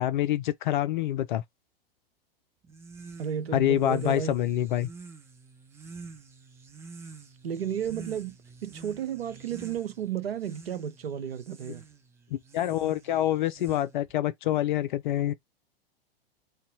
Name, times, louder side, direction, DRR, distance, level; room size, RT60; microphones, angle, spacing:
voice 1, 0.0-1.4 3.5-4.9 12.3-15.3, left 12 dB, 55° left, 0.4 m, -26 dB
sound 1, 2.6-14.2, right 4 dB, 10° right, 0.4 m, -48 dB
voice 2, 3.2-4.3 7.4-8.4 8.6-11.8, right 8 dB, 80° right, 0.5 m, -33 dB
2.7 x 2.2 x 3.8 m
figure-of-eight pair, 100°, 30 cm